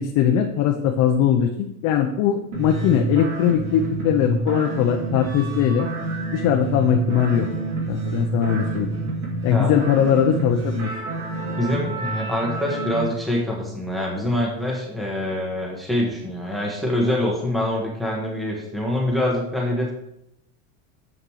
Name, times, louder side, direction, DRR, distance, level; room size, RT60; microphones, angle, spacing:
voice 1, 0.0-5.9 6.3-7.5 7.9-8.9 9.4-10.9, left 9 dB, 45° left, 3 dB, 0.8 m, -20 dB
sound 1, 2.5-13.1, right 2 dB, 60° right, 2.7 m, -28 dB
voice 2, 11.6-19.9, left 1 dB, ahead, -2 dB, 1.4 m, -25 dB
7.4 x 6.5 x 4.8 m, 0.83 s
supercardioid pair, 145°, 40 cm